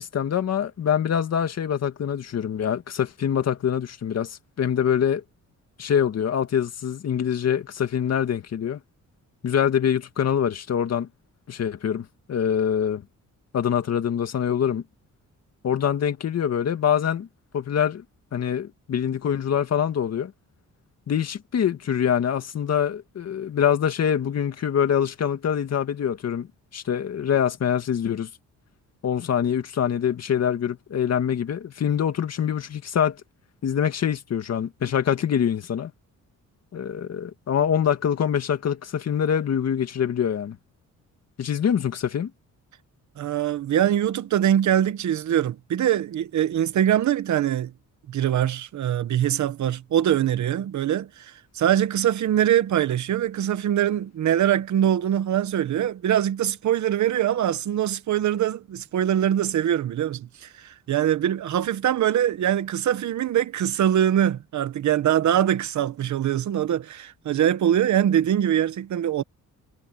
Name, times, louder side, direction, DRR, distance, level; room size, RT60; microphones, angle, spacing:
voice 1, 0.0-5.2 5.8-8.8 9.4-11.1 11.5-13.0 13.5-14.8 15.6-17.3 17.5-18.0 18.3-20.3 21.1-28.3 29.0-33.2 33.6-35.9 36.7-40.6 41.4-42.3, left 8 dB, 55° left, 2.1 m, -24 dB
voice 2, 43.2-47.7 48.1-69.2, right 10 dB, 65° right, 1.2 m, -23 dB
cardioid pair, 145°, 31 cm